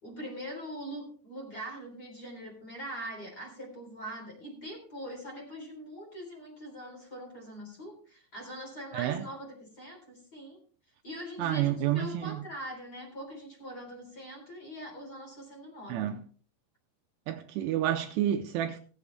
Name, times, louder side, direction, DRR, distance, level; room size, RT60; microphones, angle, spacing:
voice 1, 0.0-10.6 11.0-16.1, equal, 25° left, 3.8 m, -42 dB
voice 2, 8.9-9.2 11.4-12.4 15.9-16.2 17.3-18.8, right 12 dB, 80° right, 2.6 m, -29 dB
18.5 x 8.0 x 3.4 m
omnidirectional pair, 5.1 m